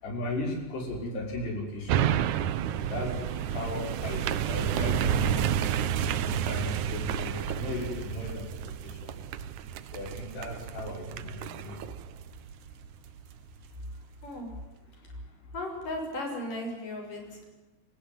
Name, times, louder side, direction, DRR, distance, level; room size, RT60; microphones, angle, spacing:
voice 1, 0.0-2.1 2.9-3.2 3.5-5.7 6.2-8.4 9.0-9.1 9.9-11.8, left 1 dB, 80° left, 2 dB, 7.9 m, -36 dB
sound 1, 1.9-13.3 13.8-13.9, right 9 dB, 75° right, 1.8 m, -30 dB
voice 2, 14.2-14.5 15.5-17.5, left 1 dB, 50° left, 2 dB, 8.4 m, -36 dB
29.5 x 15.0 x 9.7 m, 1.1 s
omnidirectional pair, 4.8 m